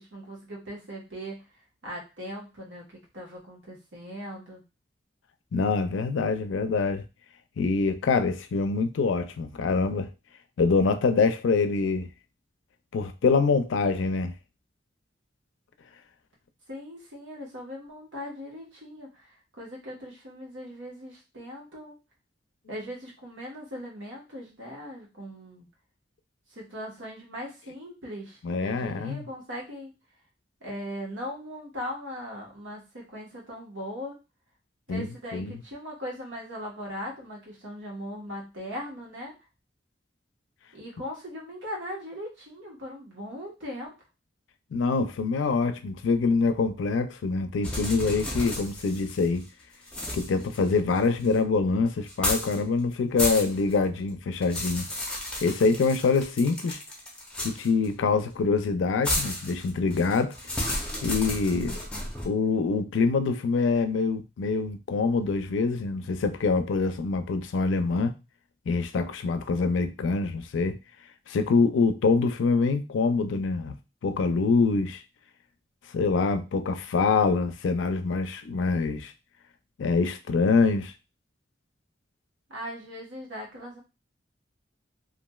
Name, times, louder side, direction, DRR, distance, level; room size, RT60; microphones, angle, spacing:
voice 1, 0.0-1.4 1.8-4.6 16.7-19.3 19.6-21.9 22.7-25.7 26.5-29.9 30.6-34.2 34.9-39.3 40.7-43.9 82.5-83.8, equal, 90° right, 1.2 m, -39 dB
voice 2, 5.5-7.0 7.6-10.1 10.6-12.1 12.9-14.3 28.4-29.2 34.9-35.1 35.3-35.6 44.7-49.4 50.1-54.9 55.4-56.8 57.4-60.3 61.0-61.8 62.2-68.1 68.7-70.8 71.3-73.7 74.0-75.0 75.9-79.1 79.8-80.9, left 4 dB, 85° left, 0.4 m, -25 dB
sound 1, 47.6-49.4 49.9-51.4 52.1-52.6 52.9-53.7 54.1-57.9 59.0-62.3, left 1 dB, 5° left, 0.5 m, -32 dB
3.0 x 2.5 x 2.2 m
head